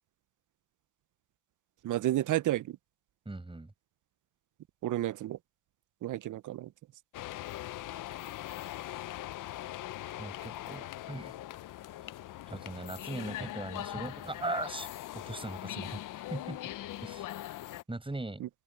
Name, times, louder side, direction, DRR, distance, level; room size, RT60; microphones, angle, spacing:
voice 1, 1.8-2.8 4.8-5.4 6.0-6.7 18.4-18.5, right 14 dB, 45° right, 0.7 m, -31 dB
voice 2, 3.3-3.7 10.2-11.3 12.5-14.9 15.1-16.6 17.0-17.3 17.9-18.4, right 2 dB, 10° right, 5.8 m, -39 dB
sound 1, 7.1-17.8, left 14 dB, 50° left, 0.6 m, -41 dB
supercardioid pair, 85°, 41 cm